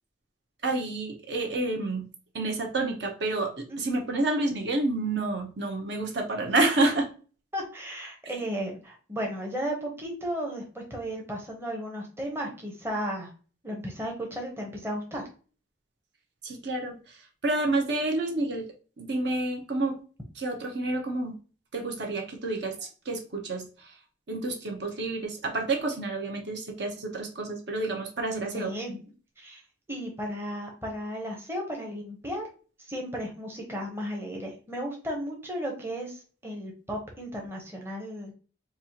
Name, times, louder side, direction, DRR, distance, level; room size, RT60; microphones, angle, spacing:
voice 1, 0.6-2.1 2.3-7.1 16.4-17.2 17.4-18.6 19.0-20.0 20.4-21.3 21.7-23.9 24.3-28.7, right 2 dB, 55° right, 2 dB, 0.8 m, -29 dB
voice 2, 3.7-4.0 7.5-13.3 13.6-15.3 28.5-29.0 29.4-29.6 29.9-32.5 32.8-38.3, equal, 10° right, 0 dB, 0.8 m, -34 dB
4.2 x 2.4 x 2.8 m, 0.38 s
head